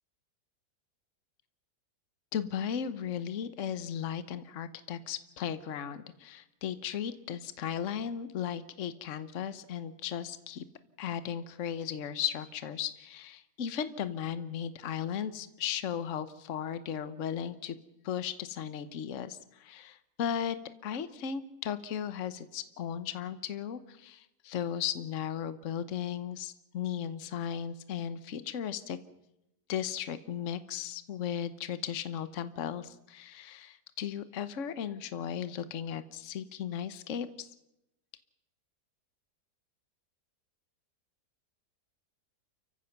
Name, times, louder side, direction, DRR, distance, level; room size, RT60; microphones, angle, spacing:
voice 1, 2.3-10.6 11.0-17.8 18.0-20.6 20.8-29.0 29.7-37.5, left 9 dB, 55° left, 12 dB, 1.2 m, -36 dB
29.0 x 15.5 x 5.9 m, 0.88 s
omnidirectional pair, 1.8 m